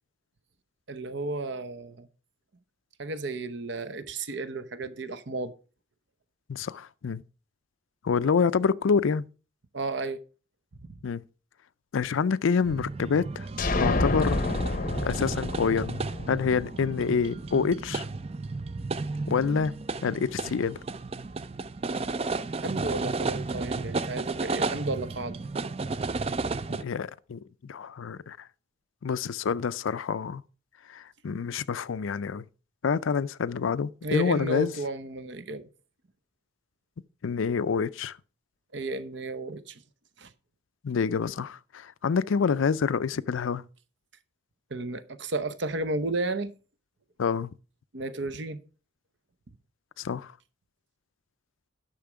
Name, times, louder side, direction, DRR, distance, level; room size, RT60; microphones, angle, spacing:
voice 1, 0.9-2.1 3.0-5.5 9.7-10.2 10.9-11.0 22.6-25.4 34.0-35.7 38.7-39.8 40.2-40.3 44.7-46.5 47.9-48.6, right 2 dB, 60° right, 0.8 m, -33 dB
voice 2, 6.5-7.2 8.0-9.2 11.0-11.2 11.9-13.5 13.8-14.4 15.0-16.0 16.3-18.1 19.3-19.8 20.0-20.8 26.7-28.5 29.0-30.4 30.9-32.5 32.8-34.7 37.2-38.2 40.8-43.6 47.2-47.6 50.0-50.3, left 5 dB, 80° left, 0.4 m, -27 dB
sound 1, 12.6-26.8, right 3 dB, 30° right, 0.4 m, -33 dB
sound 2, 13.6-17.3, left 2 dB, 40° left, 0.7 m, -29 dB
10.5 x 6.4 x 4.9 m
head